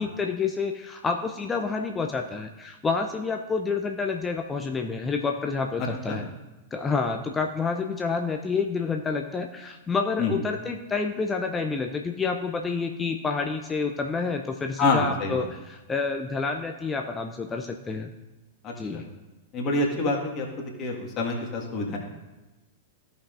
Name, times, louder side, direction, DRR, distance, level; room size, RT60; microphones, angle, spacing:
voice 1, 0.0-6.3 6.7-18.1 18.8-19.1, left 4 dB, 15° left, 4 dB, 0.5 m, -29 dB
voice 2, 14.8-15.4 18.6-19.0 19.5-20.5 20.8-22.0, left 3 dB, 30° left, -1 dB, 1.7 m, -27 dB
15.0 x 5.3 x 2.5 m, 1.1 s
figure-of-eight pair, 100°, 0 cm